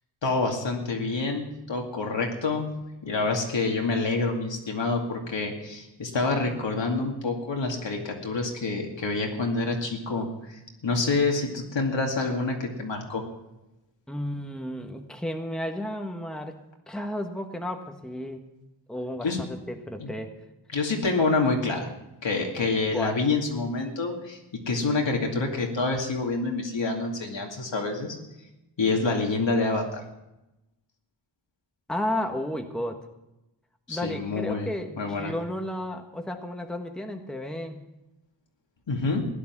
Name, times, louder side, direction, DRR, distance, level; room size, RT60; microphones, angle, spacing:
voice 1, 0.2-2.7 3.0-13.2 19.2-19.4 20.0-20.1 20.7-21.9 22.2-24.4 24.7-28.2 28.8-30.0 33.9-34.7 35.0-35.3 38.9-39.3, left 3 dB, 70° left, 1 dB, 2.6 m, -27 dB
voice 2, 14.1-16.6 16.9-18.5 18.9-20.3 22.9-23.2 31.9-33.1 33.9-37.8, left 1 dB, ahead, 4 dB, 1.3 m, -33 dB
16.0 x 10.5 x 6.0 m, 0.94 s
wide cardioid pair, 70°, 46 cm